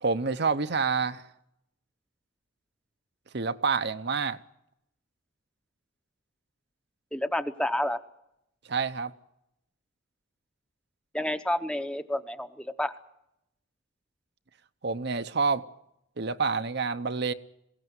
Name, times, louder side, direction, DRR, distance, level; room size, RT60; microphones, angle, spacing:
voice 1, 0.0-1.2 3.3-4.4 8.7-9.1 14.8-15.6 16.2-17.3, right 4 dB, 50° right, 0.8 m, -28 dB
voice 2, 7.1-8.0 11.1-12.9, left 1 dB, 5° left, 0.8 m, -29 dB
21.5 x 17.5 x 9.4 m
head